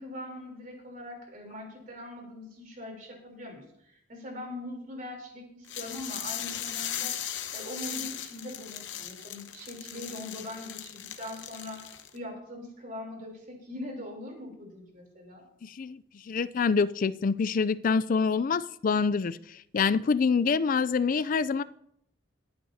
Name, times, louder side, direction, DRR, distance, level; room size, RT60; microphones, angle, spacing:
voice 1, 0.0-7.2 7.5-11.8 12.1-15.4, left 1 dB, 45° right, 1 dB, 3.4 m, -41 dB
sound 1, 5.7-12.2, left 10 dB, 70° left, 0.9 m, -38 dB
voice 2, 15.6-19.4 19.7-21.6, left 5 dB, 45° left, 16 dB, 0.4 m, -26 dB
22.0 x 8.5 x 2.8 m, 0.71 s
head